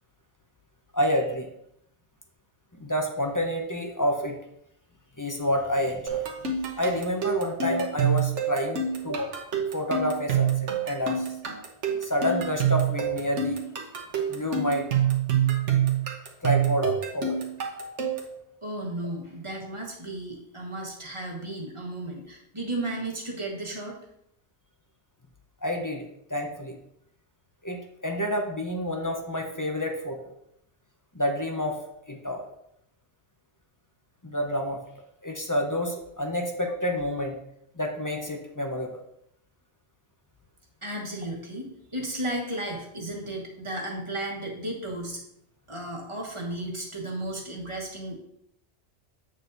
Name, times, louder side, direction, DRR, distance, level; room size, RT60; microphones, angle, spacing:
voice 1, 0.9-1.5 2.8-4.4 5.2-6.2 6.8-9.4 9.7-10.5 10.8-11.3 12.0-13.6 14.3-14.9 16.4-17.4 25.6-26.7 27.6-30.3 31.1-31.8 32.1-32.5 34.2-34.8 35.2-37.4 37.8-38.9, equal, 20° left, 2 dB, 0.7 m, -28 dB
sound 1, 6.1-18.4, right 8 dB, 85° right, 1.3 m, -27 dB
voice 2, 18.6-23.9 40.8-45.2 45.7-48.2, right 1 dB, 25° right, -2 dB, 1.5 m, -34 dB
7.9 x 6.6 x 2.7 m, 0.77 s
omnidirectional pair, 1.2 m